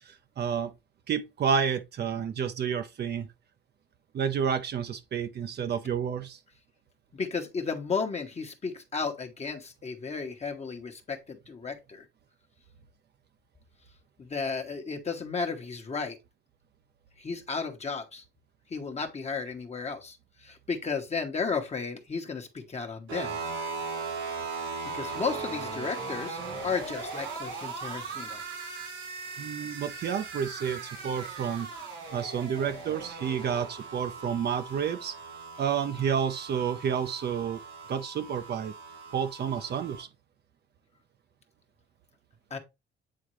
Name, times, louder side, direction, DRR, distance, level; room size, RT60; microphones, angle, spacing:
voice 1, 0.0-0.7 1.1-3.3 4.1-6.4 29.4-31.7 32.1-35.2 35.6-37.6 37.9-38.7 39.1-40.1, right 7 dB, 55° right, 0.7 m, -30 dB
voice 2, 7.1-12.0 14.2-16.2 17.2-18.2 18.7-23.4 24.9-28.4 42.5-42.6, left 5 dB, 35° left, 1.0 m, -34 dB
sound 1, 23.1-40.0, right 4 dB, 80° right, 3.4 m, -39 dB
8.6 x 3.6 x 3.1 m
cardioid pair, 90°, 20 cm